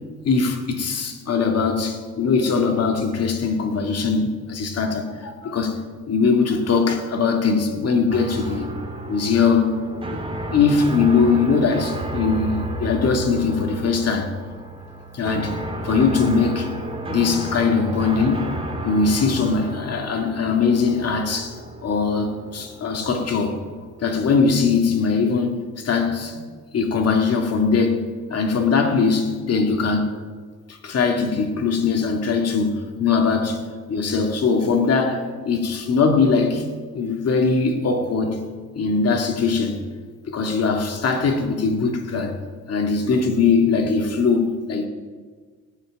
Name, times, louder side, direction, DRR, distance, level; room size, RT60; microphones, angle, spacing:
voice 1, 0.2-8.7 9.1-9.8 10.5-14.3 15.1-15.6 15.8-16.7 17.1-18.6 18.8-23.6 24.0-26.4 26.7-28.0 28.3-30.2 30.7-33.6 33.9-36.7 36.9-38.5 38.8-39.8 40.3-42.4 42.7-44.9, left 5 dB, 50° left, 2.3 m, -21 dB
sound 1, 8.1-24.0, right 2 dB, 15° right, 2.5 m, -32 dB
17.5 x 7.6 x 8.9 m
cardioid pair, 125°, 31 cm